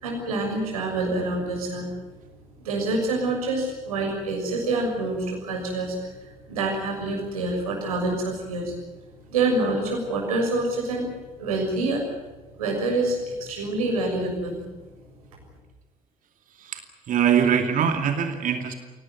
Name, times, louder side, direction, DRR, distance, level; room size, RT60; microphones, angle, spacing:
voice 1, 0.0-1.9 2.6-5.9 6.5-8.7 9.3-11.1 11.4-12.0 12.6-14.6, right 2 dB, 75° right, 1 dB, 6.6 m, -26 dB
voice 2, 17.1-18.8, right 8 dB, 45° right, 6 dB, 2.6 m, -22 dB
24.5 x 18.0 x 9.3 m, 1.2 s
figure-of-eight pair, 50°, 19 cm